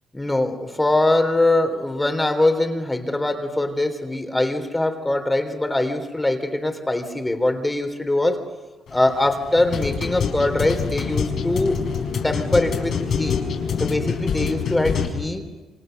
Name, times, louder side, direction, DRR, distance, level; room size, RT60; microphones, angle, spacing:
voice 1, 0.1-8.4 8.9-11.8 12.2-13.4 13.8-15.4, left 2 dB, 15° left, 7 dB, 3.6 m, -22 dB
sound 1, 8.9-15.0, left 6 dB, 65° left, 5.7 m, -26 dB
29.0 x 25.5 x 6.7 m, 1.2 s
cardioid pair, 90°, 0 cm